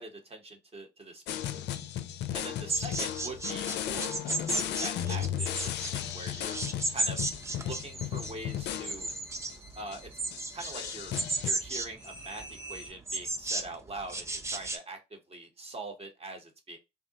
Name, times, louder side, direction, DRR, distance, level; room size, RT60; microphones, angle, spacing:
voice 1, 0.0-1.7 2.3-4.1 4.5-6.6 6.9-7.2 7.6-9.1 9.7-10.1 10.5-11.1 11.4-16.8, right 2 dB, 30° right, 1.0 m, -43 dB
sound 1, 1.3-9.2 9.5-9.6 9.9-10.0 10.3-11.5, left 10 dB, 60° left, 0.4 m, -35 dB
sound 2, 2.7-14.8, right 2 dB, 15° right, 0.5 m, -34 dB
sound 3, 7.2-12.9, right 1 dB, 75° right, 1.8 m, -50 dB
3.6 x 2.0 x 2.8 m
hypercardioid pair, 55°, 20 cm